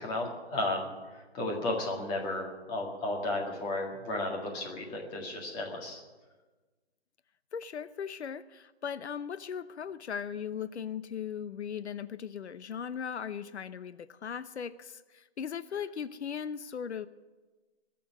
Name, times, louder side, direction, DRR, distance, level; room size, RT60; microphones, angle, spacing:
voice 1, 0.0-6.0, left 2 dB, 15° left, 0 dB, 1.9 m, -34 dB
voice 2, 7.5-17.1, left 7 dB, 90° left, 14 dB, 0.8 m, -38 dB
20.0 x 7.1 x 9.6 m, 1.3 s
hypercardioid pair, 165°, 33 cm